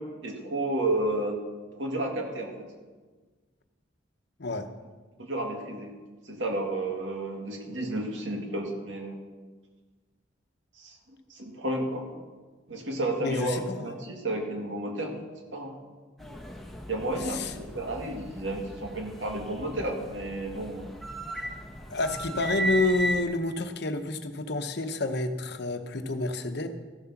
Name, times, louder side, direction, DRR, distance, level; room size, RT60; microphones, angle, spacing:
voice 1, 0.0-1.4 1.8-2.7 5.2-6.0 6.3-9.2 10.8-12.1 12.7-15.1 15.5-15.7 16.9-20.9, right 1 dB, 80° right, 1 dB, 2.2 m, -32 dB
voice 2, 13.2-14.0 17.2-17.5 21.9-26.7, left 2 dB, 60° left, 7 dB, 0.9 m, -29 dB
sound 1, 16.2-23.2, right 1 dB, ahead, 1.2 m, -36 dB
14.0 x 7.7 x 5.9 m, 1.3 s
head